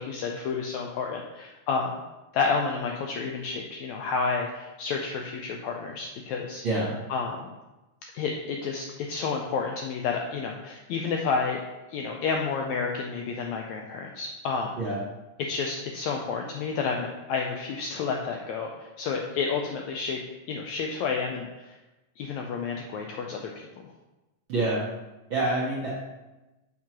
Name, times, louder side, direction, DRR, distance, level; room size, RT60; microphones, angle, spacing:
voice 1, 0.0-1.9 2.3-6.6 7.1-7.5 8.1-11.6 11.9-14.7 15.4-20.2 20.5-21.7 22.2-23.5, left 5 dB, 90° left, 1 dB, 1.6 m, -30 dB
voice 2, 6.6-7.0 14.8-15.0 24.5-24.8 25.3-25.9, right 2 dB, 70° right, -6 dB, 1.1 m, -26 dB
7.3 x 6.0 x 3.0 m, 1.0 s
omnidirectional pair, 3.8 m